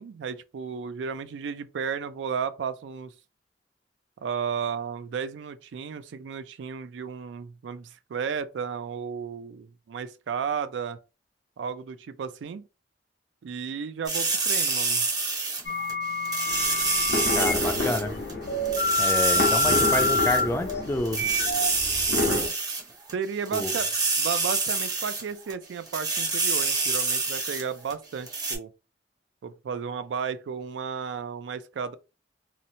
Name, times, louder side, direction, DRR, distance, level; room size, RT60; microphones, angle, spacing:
voice 1, 0.0-3.1 4.2-11.0 11.6-12.7 13.4-15.1 23.1-23.9 24.2-28.7 29.4-32.0, right 6 dB, 85° right, 0.3 m, -33 dB
sound 1, 14.1-15.9 16.3-18.0 18.3-18.4 18.7-20.4 20.7-20.8 21.1-23.1 23.5-25.2 25.5-25.6 25.9-27.6 27.9-28.0 28.3-28.6, right 4 dB, 20° right, 0.6 m, -27 dB
sound 2, 15.6-17.5 18.5-22.5, left 2 dB, 60° left, 0.8 m, -27 dB
sound 3, 16.5-22.5, left 2 dB, 85° left, 0.8 m, -30 dB
voice 2, 17.3-18.1 19.0-21.3 23.5-23.7, left 2 dB, 15° left, 0.3 m, -28 dB
2.9 x 2.0 x 2.6 m
head